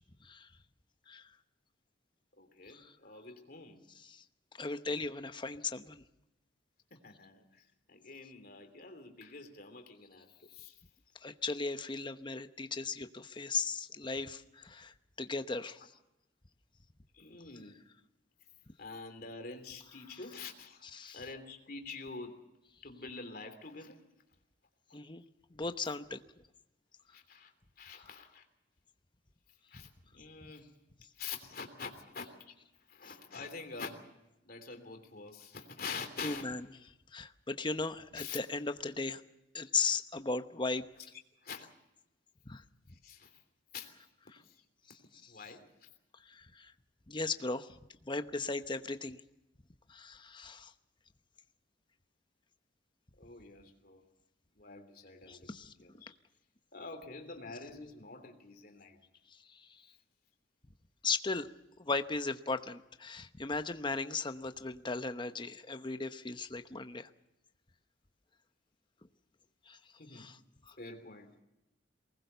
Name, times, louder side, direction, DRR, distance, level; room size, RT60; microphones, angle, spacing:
voice 1, 2.4-3.8 6.9-10.8 17.1-17.8 18.8-22.4 22.8-24.0 24.9-25.0 27.1-27.5 27.8-28.4 29.7-29.9 30.1-30.7 31.1-32.5 32.9-34.1 34.4-36.4 38.1-38.4 41.4-41.7 42.9-43.4 43.7-43.9 44.4-44.6 45.1-45.9 53.2-54.0 54.5-55.5 55.8-56.2 56.7-59.0 70.0-70.3 70.8-71.4, left 4 dB, 55° left, 6 dB, 3.1 m, -46 dB
voice 2, 4.5-6.0 11.2-15.9 20.1-20.2 20.8-21.2 24.9-25.2 25.5-26.2 28.0-28.1 29.7-29.8 36.2-36.6 37.1-39.2 39.5-40.9 42.5-42.6 44.9-45.3 46.3-46.7 47.1-49.2 49.9-50.7 55.3-55.7 59.3-59.8 61.0-61.5 61.8-67.1 69.7-69.8 70.1-70.4 70.7-70.8, left 4 dB, 25° left, 9 dB, 0.9 m, -37 dB
23.0 x 20.0 x 6.8 m, 0.92 s
head